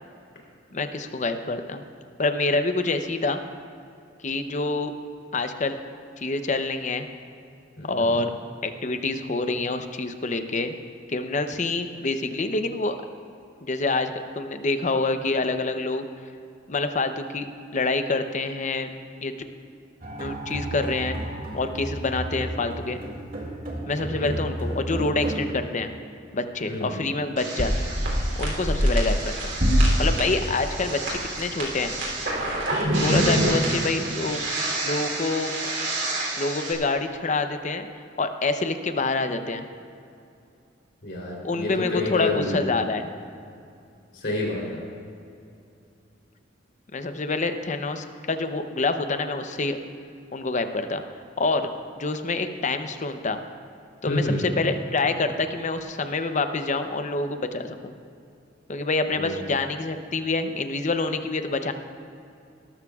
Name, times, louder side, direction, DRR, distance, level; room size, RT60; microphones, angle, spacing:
voice 1, 0.7-1.8 2.2-3.4 4.2-4.9 5.3-5.8 6.2-7.1 7.8-8.3 8.6-10.8 11.1-13.0 13.6-16.0 16.7-18.9 19.2-19.4 20.2-21.2 21.5-23.0 23.9-25.9 26.3-27.9 28.4-29.6 30.0-31.9 33.0-34.4 34.8-35.5 36.4-37.9 38.2-39.6 41.4-43.1 46.9-49.8 50.3-51.0 51.4-53.4 54.0-57.9 58.7-61.7, left 3 dB, 40° left, 8 dB, 0.7 m, -27 dB
voice 2, 7.8-8.1 24.0-24.4 26.7-26.9 33.2-33.7 41.0-42.6 44.1-44.8 54.1-54.4 59.1-59.4, left 2 dB, 65° left, -3 dB, 3.4 m, -29 dB
sound 1, 20.0-25.5, right 1 dB, 50° right, 2.2 m, -33 dB
sound 2, 27.4-36.7, right 1 dB, 75° right, 3.2 m, -25 dB
19.5 x 13.0 x 2.4 m, 2.5 s
head